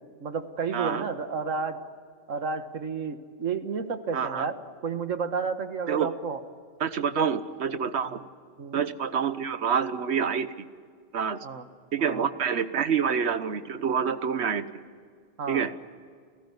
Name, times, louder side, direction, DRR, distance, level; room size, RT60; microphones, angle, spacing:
voice 1, 0.2-1.8 2.3-4.6 4.8-6.4 7.2-7.3 8.1-8.2 8.6-8.8 11.4-11.6 12.0-12.3 15.4-15.6, right 5 dB, 80° right, 9 dB, 1.8 m, -31 dB
voice 2, 0.7-1.1 4.1-4.5 5.9-6.1 6.8-8.2 8.7-10.6 11.1-11.5 11.9-14.8 15.5-15.7, right 7 dB, 60° right, 12 dB, 1.3 m, -27 dB
28.5 x 15.5 x 9.6 m, 2.1 s
omnidirectional pair, 1.3 m